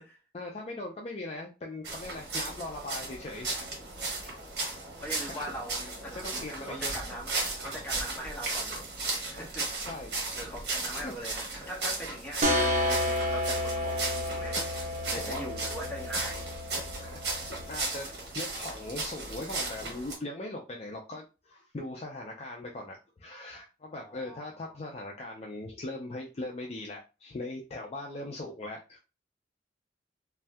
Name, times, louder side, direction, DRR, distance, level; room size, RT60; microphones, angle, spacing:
voice 1, 0.3-3.7 4.0-4.3 5.3-5.4 6.2-6.9 9.9-10.1 11.0-11.1 15.1-15.4 17.0-18.1 18.3-29.0, left 2 dB, 35° left, 0 dB, 0.4 m, -40 dB
sound 1, 1.8-20.1, right 3 dB, 65° right, 1.1 m, -36 dB
voice 2, 5.0-7.3 7.6-8.8 9.2-9.9 10.3-16.5 23.9-24.8, equal, 10° left, -2 dB, 1.0 m, -42 dB
sound 2, 12.4-17.9, left 1 dB, 45° right, 0.7 m, -31 dB
2.6 x 2.2 x 3.3 m, 0.30 s
head